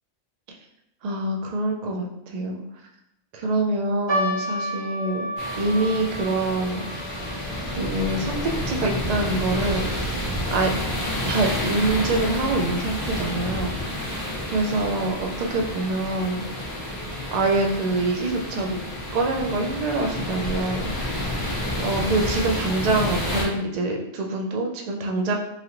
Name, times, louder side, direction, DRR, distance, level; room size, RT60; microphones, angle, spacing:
voice 1, 1.0-2.6 3.3-5.3 5.6-7.1 7.7-9.9 10.5-10.7 11.3-14.1 14.5-16.5 17.3-18.8 19.1-20.9 21.8-25.3, right 2 dB, 75° right, 1 dB, 0.3 m, -25 dB
sound 1, 4.1-10.6 10.8-10.9 11.7-12.0 12.6-12.7 13.0-13.2, equal, 30° right, 0.6 m, -33 dB
sound 2, 5.4-23.4, left 1 dB, 45° left, 1.1 m, -29 dB
3.2 x 2.4 x 2.9 m, 0.80 s
omnidirectional pair, 1.3 m